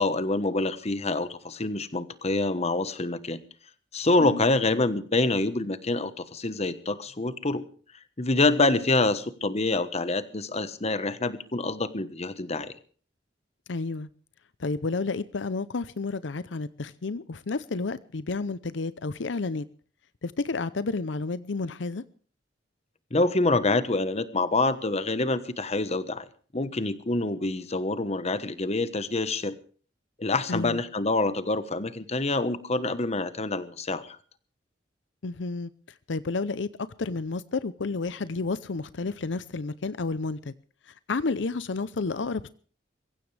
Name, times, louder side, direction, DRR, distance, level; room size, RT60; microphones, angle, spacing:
voice 1, 0.0-3.4 3.9-7.7 8.2-12.7 23.1-26.2 26.5-29.6 30.2-34.2, left 2 dB, 35° left, 13 dB, 1.2 m, -26 dB
voice 2, 13.7-14.1 14.6-19.7 20.2-22.0 30.5-30.8 35.2-35.7 36.1-36.7 37.0-40.5 40.9-42.5, left 3 dB, 80° left, 16 dB, 0.7 m, -31 dB
23.0 x 15.5 x 3.4 m, 0.43 s
head